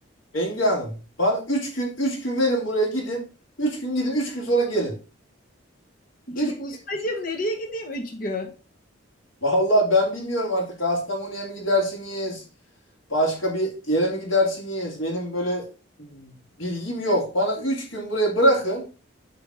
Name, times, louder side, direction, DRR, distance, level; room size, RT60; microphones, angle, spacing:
voice 1, 0.3-3.2 3.6-4.9 6.3-6.5 9.4-12.4 13.1-15.7 16.0-18.9, equal, 80° left, -2 dB, 2.4 m, -24 dB
voice 2, 6.3-8.5, left 1 dB, 45° left, 3 dB, 1.0 m, -30 dB
7.1 x 3.5 x 4.8 m, 0.35 s
head